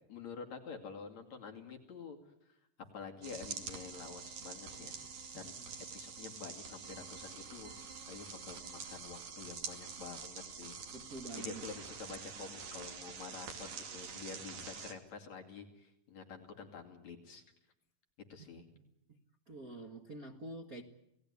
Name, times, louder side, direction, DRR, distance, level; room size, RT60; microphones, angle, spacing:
voice 1, 0.1-2.2 2.5-2.6 2.9-4.9 5.3-5.6 5.9-10.8 11.3-17.4 18.3-18.6, left 5 dB, 55° left, 4 dB, 3.6 m, -48 dB
sound 1, 3.2-14.9, right 6 dB, 85° right, 4.2 m, -46 dB
voice 2, 5.3-5.7 10.9-11.6 18.4-18.5 18.7-18.8 19.5-20.8, right 2 dB, 40° right, 5 dB, 1.3 m, -47 dB
28.5 x 18.5 x 9.7 m, 0.82 s
omnidirectional pair, 3.8 m